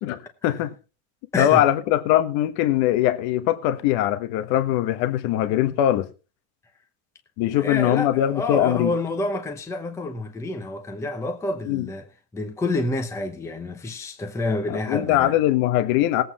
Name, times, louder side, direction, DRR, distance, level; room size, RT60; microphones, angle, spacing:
voice 1, 0.0-0.7 1.4-6.1 7.4-8.9 11.7-11.9 14.7-16.2, left 13 dB, 55° left, 1.3 m, -21 dB
voice 2, 7.5-12.0 12.3-15.3, left 2 dB, 5° left, 0.9 m, -28 dB
18.5 x 8.2 x 4.2 m
cardioid pair, 165°, 45 cm